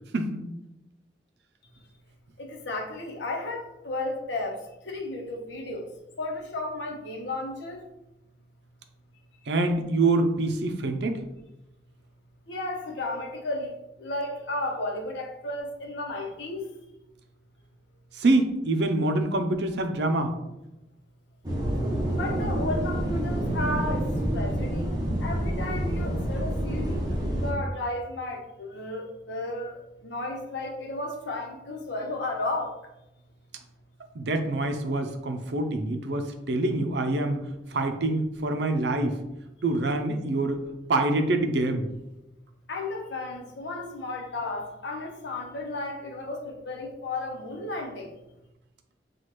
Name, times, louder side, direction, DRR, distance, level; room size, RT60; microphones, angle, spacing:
voice 1, 2.4-4.5 4.8-5.9 6.2-7.8 12.5-13.7 14.0-16.7 22.1-24.0 24.3-25.0 25.2-27.1 27.4-32.7 42.7-48.1, left 2 dB, 90° left, 1 dB, 0.8 m, -33 dB
voice 2, 9.5-11.2 18.1-20.3 34.1-37.4 37.7-39.2 39.6-40.6 40.9-41.9, right 2 dB, 75° right, 6 dB, 0.5 m, -25 dB
sound 1, 21.4-27.5, right 1 dB, 20° right, 0.8 m, -28 dB
5.8 x 2.3 x 3.1 m, 0.94 s
head